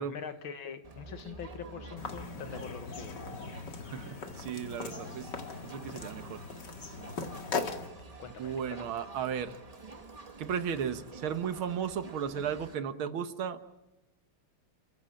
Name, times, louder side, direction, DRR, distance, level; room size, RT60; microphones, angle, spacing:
voice 1, 0.0-3.5 8.2-8.9, left 7 dB, 70° left, 9 dB, 2.3 m, -44 dB
Crowd, 0.8-12.8, right 3 dB, 25° right, 1.0 m, -49 dB
sound 1, 2.0-7.9, left 4 dB, 55° left, 2.5 m, -39 dB
voice 2, 3.9-5.3 5.6-6.4 8.4-9.6 10.4-13.6, right 8 dB, 75° right, 10 dB, 2.0 m, -35 dB
29.0 x 15.0 x 8.8 m, 1.0 s
omnidirectional pair, 2.3 m